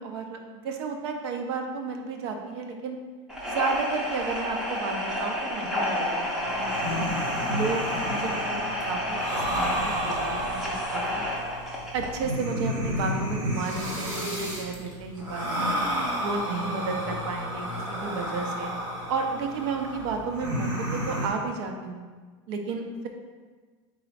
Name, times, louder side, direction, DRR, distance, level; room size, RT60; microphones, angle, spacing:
voice 1, 0.0-3.0 3.4-6.9 7.5-11.2 11.9-15.8 16.2-18.7 19.1-22.0 22.5-23.1, right 4 dB, 55° right, 4 dB, 0.6 m, -32 dB
sound 1, 3.3-12.2, left 1 dB, 5° right, 0.5 m, -30 dB
sound 2, 6.5-21.3, equal, 25° right, 0.9 m, -32 dB
4.0 x 3.6 x 3.3 m, 1.4 s
supercardioid pair, 160°, 16 cm